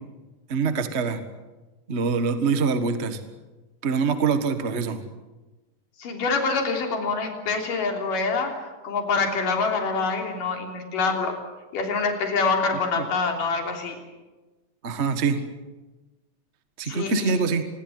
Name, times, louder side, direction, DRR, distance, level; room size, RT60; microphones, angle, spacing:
voice 1, 0.5-1.2 1.9-3.2 3.8-5.0 13.0-13.1 14.8-15.4 16.8-17.6, right 5 dB, 45° right, 8 dB, 0.9 m, -24 dB
voice 2, 6.0-8.6 8.8-11.3 11.7-14.0 16.9-17.4, left 4 dB, 75° left, 2 dB, 5.0 m, -25 dB
27.0 x 21.0 x 7.8 m, 1.2 s
omnidirectional pair, 3.8 m